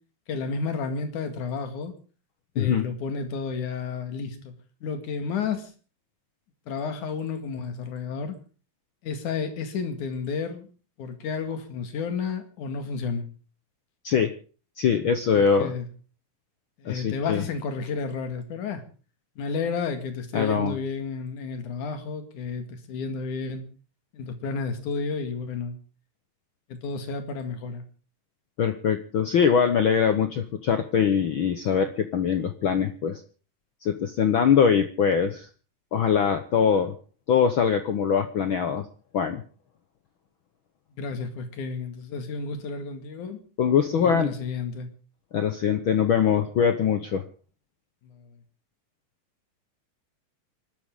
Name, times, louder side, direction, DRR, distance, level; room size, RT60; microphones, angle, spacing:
voice 1, 0.3-1.9 2.6-4.5 4.8-5.7 6.7-8.4 9.0-10.7 11.0-13.3 15.3-15.9 16.8-18.8 19.4-23.6 24.1-25.8 26.7-27.8 41.0-43.4 43.7-44.9 48.0-48.3, left 5 dB, 65° left, 8 dB, 3.5 m, -31 dB
voice 2, 2.6-2.9 14.0-14.3 14.8-15.7 16.8-17.4 20.3-20.8 28.6-33.2 33.8-35.5 35.9-37.0 37.3-38.8 39.1-39.4 43.6-44.3 45.3-47.2, left 7 dB, 85° left, 9 dB, 1.1 m, -22 dB
27.5 x 12.5 x 3.7 m, 0.37 s
omnidirectional pair, 3.8 m